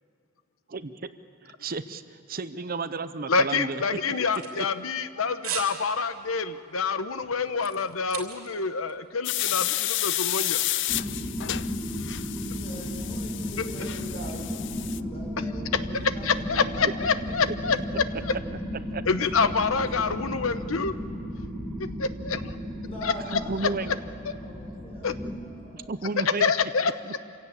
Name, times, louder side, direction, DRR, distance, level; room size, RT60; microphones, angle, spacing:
voice 1, 1.4-2.0 2.3-4.0 4.6-4.7 18.1-18.2 18.9-19.0 23.3-23.9 25.7-26.5 26.8-27.2, right 3 dB, 45° right, 12 dB, 0.7 m, -33 dB
voice 2, 3.3-10.6 16.2-17.8 18.3-18.4 19.1-20.9 22.0-22.5 23.0-23.1 25.0-25.2 26.4-26.9, left 5 dB, 80° left, 11 dB, 1.0 m, -27 dB
sound 1, 4.0-5.1 5.4-5.8 6.1-6.4 6.8-8.6 8.9-9.0, right 8 dB, 85° right, 3.2 m, -36 dB
sound 2, 9.2-15.0, left 15 dB, 60° left, 0.4 m, -31 dB
sound 3, 10.9-25.3, equal, 5° right, 2.4 m, -34 dB
voice 3, 12.5-15.9 16.1-16.9 18.0-18.1 19.8-20.5 22.8-23.8 24.3-25.1 25.4-26.1, equal, 30° left, -2 dB, 6.6 m, -43 dB
26.0 x 16.5 x 8.7 m, 2.6 s
head